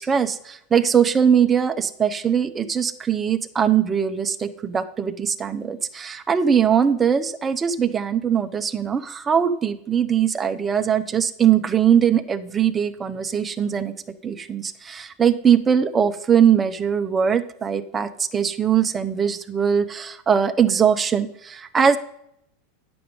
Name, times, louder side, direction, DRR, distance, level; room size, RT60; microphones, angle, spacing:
voice 1, 0.0-13.9 14.2-22.0, right 8 dB, 20° right, 9 dB, 0.7 m, -21 dB
9.4 x 6.9 x 5.3 m, 0.75 s
hypercardioid pair, 115°, 0 cm